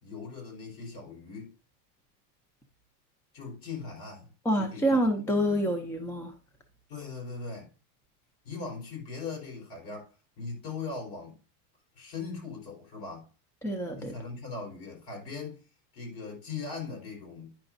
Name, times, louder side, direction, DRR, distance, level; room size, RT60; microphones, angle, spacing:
voice 1, 0.0-1.5 3.3-5.6 6.9-7.7 8.4-10.1 10.4-11.4 11.9-13.3 13.9-15.6 15.9-17.7, left 4 dB, 50° left, 4.4 m, -40 dB
voice 2, 4.4-6.3 13.6-14.1, equal, 5° left, 0.5 m, -27 dB
9.7 x 6.0 x 2.5 m
supercardioid pair, 135°, 47 cm